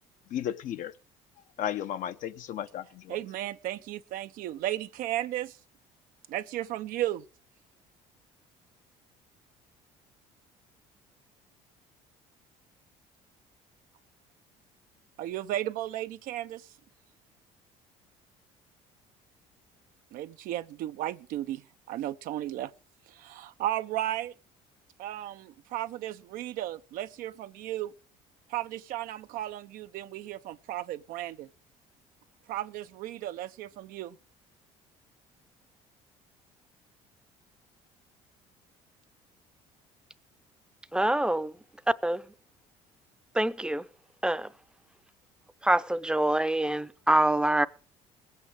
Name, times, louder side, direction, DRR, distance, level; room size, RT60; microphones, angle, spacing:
voice 1, 0.3-0.9 1.6-3.2, left 10 dB, 60° left, 0.8 m, -34 dB
voice 2, 3.1-5.6 6.3-7.2 15.2-16.7 20.1-21.6 21.9-22.7 23.1-24.3 25.0-27.9 28.5-31.5 32.5-34.2, right 13 dB, 70° right, 0.7 m, -34 dB
voice 3, 40.9-41.5 42.0-42.2 43.3-43.8 44.2-44.5 45.6-47.7, right 1 dB, 5° right, 0.7 m, -25 dB
20.5 x 8.3 x 4.9 m
supercardioid pair, 85°, 15 cm